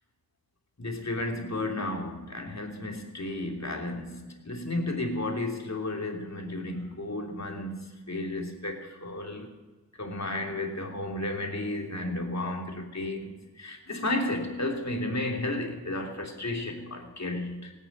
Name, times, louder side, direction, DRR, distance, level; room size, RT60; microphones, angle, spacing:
voice 1, 0.8-9.5 10.0-17.7, left 2 dB, 45° left, 2 dB, 3.2 m, -33 dB
17.5 x 9.3 x 8.8 m, 1.2 s
wide cardioid pair, 50°, 37 cm